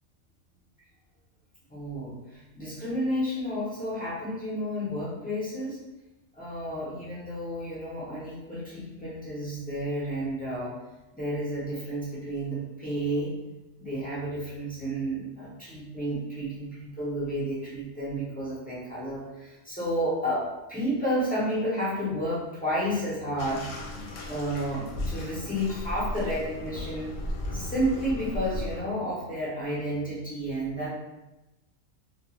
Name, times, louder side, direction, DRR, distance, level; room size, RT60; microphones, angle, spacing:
voice 1, 1.7-5.8 6.3-10.7 11.1-13.3 13.8-27.1 27.5-30.9, equal, 10° left, -9 dB, 0.5 m, -31 dB
Bathtub (filling or washing), 23.4-28.8, left 1 dB, 75° left, 1.0 m, -36 dB
2.4 x 2.2 x 2.9 m, 1.0 s
omnidirectional pair, 1.4 m